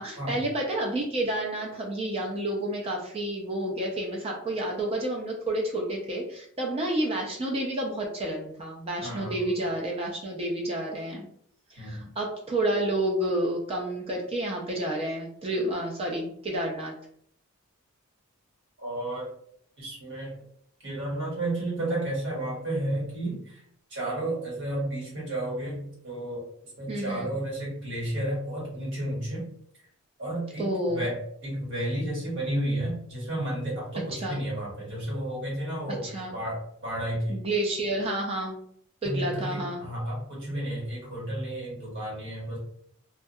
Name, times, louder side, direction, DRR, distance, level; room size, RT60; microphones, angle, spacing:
voice 1, 0.0-11.3 11.7-16.9 26.9-27.3 30.6-31.1 34.1-34.4 36.0-36.3 37.3-38.6 39.0-39.8, right 1 dB, 25° right, -1 dB, 0.4 m, -30 dB
voice 2, 9.0-9.5 11.8-12.1 18.8-19.3 19.8-20.3 20.8-23.6 23.9-26.5 26.8-29.4 30.2-37.4 39.0-42.6, right 1 dB, 60° right, -4 dB, 1.3 m, -32 dB
2.3 x 2.2 x 2.6 m, 0.66 s
head